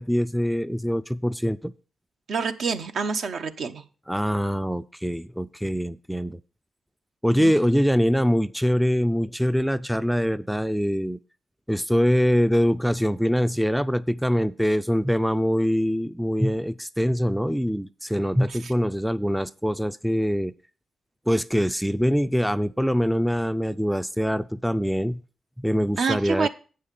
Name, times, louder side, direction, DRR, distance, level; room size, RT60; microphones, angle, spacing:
voice 1, 0.0-1.7 4.1-6.4 7.2-11.2 11.7-20.5 21.3-25.2 25.6-26.5, equal, ahead, 14 dB, 0.4 m, -23 dB
voice 2, 2.3-3.8 7.4-7.5 18.5-18.7 26.0-26.5, right 5 dB, 70° right, 7 dB, 0.8 m, -27 dB
8.3 x 5.5 x 6.6 m, 0.38 s
supercardioid pair, 60°, 0 cm